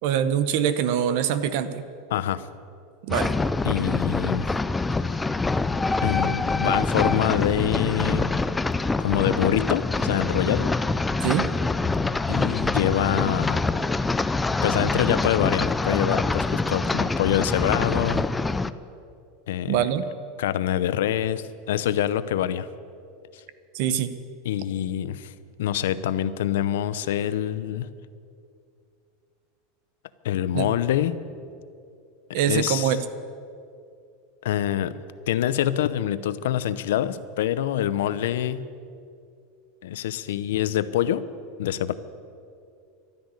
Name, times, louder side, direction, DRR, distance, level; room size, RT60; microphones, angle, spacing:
voice 1, 0.0-1.9 3.0-3.3 11.2-11.5 19.7-20.0 23.7-24.1 30.5-30.7 32.3-33.0, right 9 dB, 50° right, 12 dB, 0.9 m, -24 dB
voice 2, 2.1-2.4 3.6-4.5 6.0-8.3 9.0-10.7 12.3-13.6 14.6-18.2 19.5-19.8 20.4-22.7 24.4-25.3 25.6-27.9 30.2-31.2 32.3-32.9 34.4-35.0 35.3-38.7 39.8-41.2 41.6-41.9, left 11 dB, 85° left, 14 dB, 0.7 m, -25 dB
sound 1, 3.1-18.7, left 3 dB, 5° left, 0.3 m, -25 dB
12.5 x 10.5 x 9.7 m, 2.4 s
supercardioid pair, 170°, 0 cm